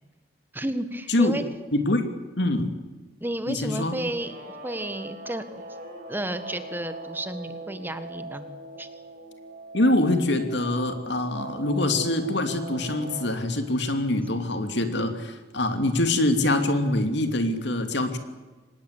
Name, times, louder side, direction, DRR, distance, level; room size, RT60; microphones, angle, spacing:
voice 1, 0.5-1.4 3.2-4.4 4.6-5.6 6.1-8.4 8.8-8.9, right 1 dB, 10° right, 10 dB, 1.6 m, -32 dB
voice 2, 1.7-2.0 2.4-2.7 3.5-3.9 9.7-18.2, left 1 dB, 65° left, 7 dB, 2.8 m, -24 dB
Guitar, 3.9-13.4, right 2 dB, 50° right, 4.9 m, -41 dB
25.5 x 20.0 x 8.3 m, 1.2 s
head